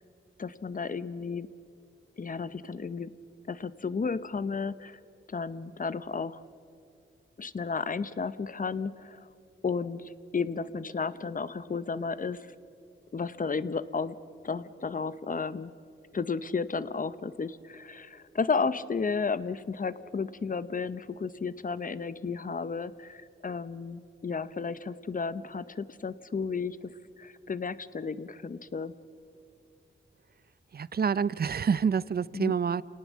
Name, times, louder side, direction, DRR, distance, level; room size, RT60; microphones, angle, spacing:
voice 1, 0.4-1.5 2.2-3.1 3.5-5.0 5.3-6.4 7.4-9.3 9.6-12.5 13.1-14.2 14.4-15.7 16.1-26.9 27.2-28.9 32.3-32.5, left 5 dB, 40° left, 15 dB, 0.8 m, -33 dB
voice 2, 30.7-32.8, right 6 dB, 50° right, 19 dB, 0.6 m, -27 dB
27.5 x 18.5 x 7.4 m, 2.4 s
wide cardioid pair, 95°, 21 cm